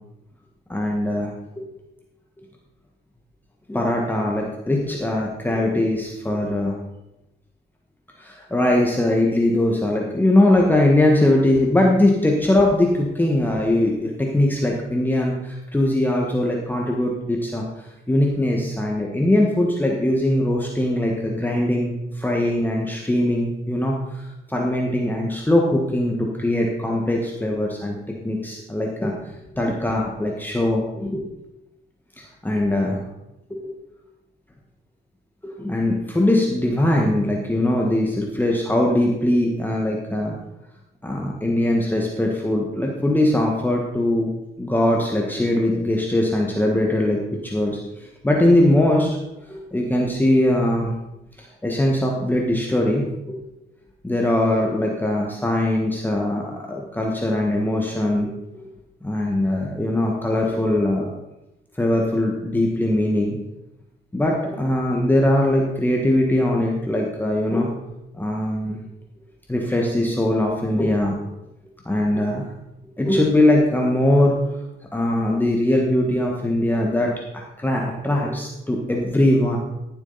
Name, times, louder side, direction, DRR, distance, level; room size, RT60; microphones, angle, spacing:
voice 1, 0.7-1.7 3.7-6.8 8.2-28.0 28.2-29.1 29.5-31.3 32.2-33.0 33.5-33.7 35.4-40.4 41.0-44.3 44.6-49.1 49.5-50.9 51.4-53.4 54.0-58.7 59.0-61.1 61.8-63.4 64.1-67.7 68.2-68.8 69.5-71.2 71.8-72.5 73.0-74.4 74.9-77.1 77.6-79.6, left 1 dB, 10° left, -1 dB, 1.5 m, -21 dB
14.0 x 7.3 x 4.1 m, 0.93 s
cardioid pair, 90°, 20 cm